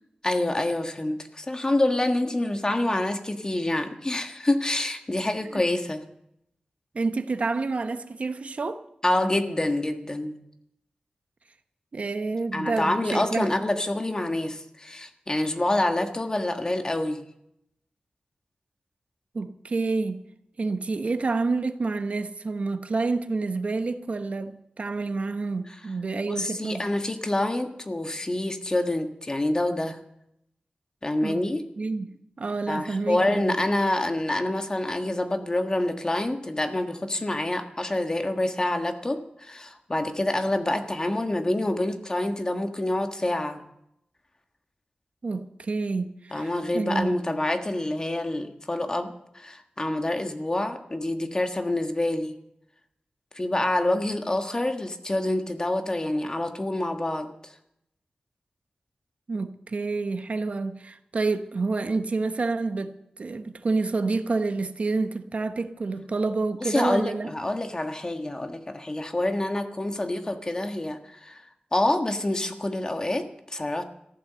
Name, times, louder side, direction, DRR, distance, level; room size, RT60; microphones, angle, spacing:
voice 1, 0.2-6.0 9.0-10.4 12.5-17.2 26.3-30.0 31.0-31.6 32.7-43.6 46.3-52.4 53.3-57.3 66.6-71.4 71.7-73.8, left 1 dB, 30° left, 1.5 m, -27 dB
voice 2, 6.9-8.8 11.9-13.5 19.3-20.2 20.6-26.9 31.2-31.4 31.8-33.6 45.2-47.2 59.3-62.9 63.2-67.3, right 3 dB, 60° right, 1.0 m, -28 dB
15.0 x 11.5 x 6.9 m
wide cardioid pair, 80°, 3 cm